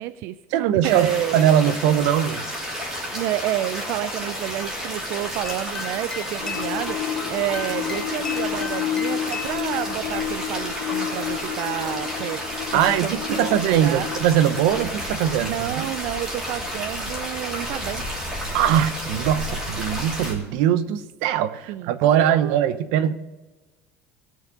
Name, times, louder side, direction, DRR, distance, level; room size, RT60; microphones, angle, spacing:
voice 1, 0.0-1.4 3.1-14.1 15.4-18.0 21.7-22.7, right 14 dB, 50° right, 13 dB, 0.4 m, -30 dB
voice 2, 0.5-1.1 1.3-2.4 12.7-15.9 18.5-23.1, right 10 dB, 80° right, 13 dB, 0.8 m, -21 dB
sound 1, 0.8-20.3, equal, 10° right, 2.8 m, -31 dB
sound 2, 5.4-9.6, left 6 dB, 15° left, 0.4 m, -36 dB
sound 3, 6.4-19.5 20.0-20.1, left 10 dB, 80° left, 2.5 m, -32 dB
18.0 x 6.4 x 5.2 m, 1.2 s
cardioid pair, 175°, 5 cm